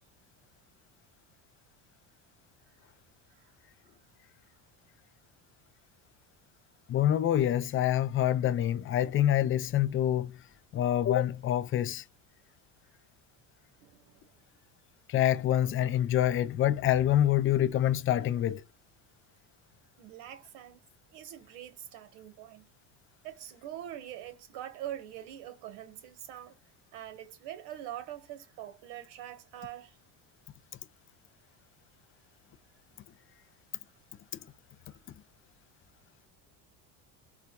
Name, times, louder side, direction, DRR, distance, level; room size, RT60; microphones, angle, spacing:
voice 1, 6.9-10.4 10.7-12.0 15.1-18.6, left 11 dB, 30° left, 0.4 m, -26 dB
voice 2, 13.8-14.3 20.0-20.8 21.1-22.7 23.2-26.6 26.9-30.0, right 12 dB, 75° right, 1.3 m, -44 dB
4.1 x 2.3 x 2.3 m
cardioid pair, 130°, 41 cm